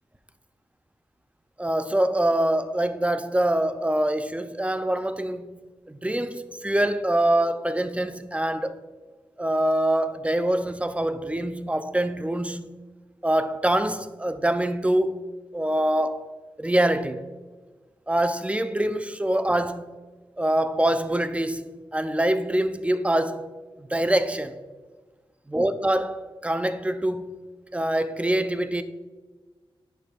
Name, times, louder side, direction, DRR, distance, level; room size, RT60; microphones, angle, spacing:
voice 1, 1.6-5.5 5.9-8.8 9.4-12.7 13.2-15.2 15.5-16.3 16.6-17.3 18.1-19.9 20.4-23.5 23.8-24.6 25.5-27.3 27.7-28.8, right 1 dB, 10° right, 0.4 m, -24 dB
8.9 x 6.5 x 2.3 m
wide cardioid pair, 70°, 10 cm